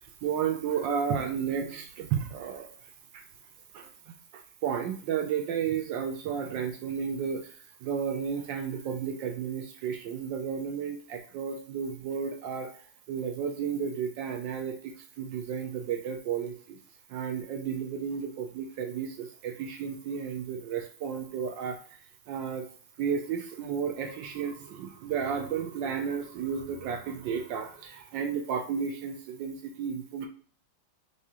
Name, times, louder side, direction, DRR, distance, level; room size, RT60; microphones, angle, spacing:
voice 1, 0.2-2.7 3.1-3.2 3.7-7.5 7.8-12.7 13.1-16.8 17.1-21.8 22.3-22.7 23.0-30.3, right 7 dB, 75° right, 4 dB, 1.2 m, -32 dB
4.9 x 2.3 x 2.8 m, 0.44 s
omnidirectional pair, 2.3 m